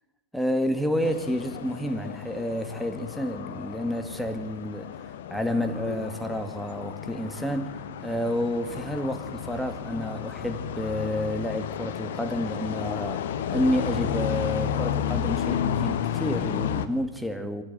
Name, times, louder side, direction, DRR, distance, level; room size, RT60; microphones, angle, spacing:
voice 1, 0.3-4.9 5.3-7.7 8.0-17.6, left 1 dB, ahead, 8 dB, 2.1 m, -29 dB
sound 1, 1.0-16.9, left 9 dB, 55° left, 1.3 m, -32 dB
25.0 x 14.5 x 8.1 m, 0.98 s
figure-of-eight pair, 90°, 0 cm